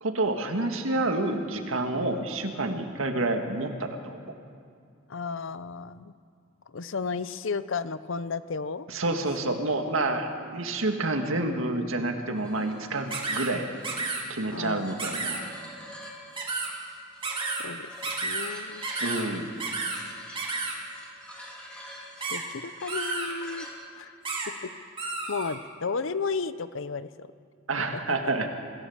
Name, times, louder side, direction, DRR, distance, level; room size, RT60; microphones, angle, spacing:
voice 1, 0.0-4.2 8.9-13.7 14.3-15.5 19.0-19.5 27.7-28.5, right 2 dB, 75° right, 5 dB, 1.9 m, -28 dB
voice 2, 5.1-6.1 6.7-9.5 14.5-14.9 17.6-17.9 18.2-18.9 22.3-23.7 24.0-24.1 24.6-24.7 25.3-27.3, left 4 dB, 65° left, 14 dB, 0.7 m, -33 dB
sound 1, 12.3-23.7, equal, 5° left, 3.4 m, -46 dB
sound 2, 13.1-13.5 13.8-14.2 15.0-15.4 16.4-16.7 17.2-17.7 18.0-18.5 18.8-19.2 19.6-20.0 20.4-20.8 22.2-22.4 22.9-23.3 24.2-24.5 25.0-25.6, right 3 dB, 25° right, 2.9 m, -31 dB
25.0 x 15.5 x 7.2 m, 2.3 s
head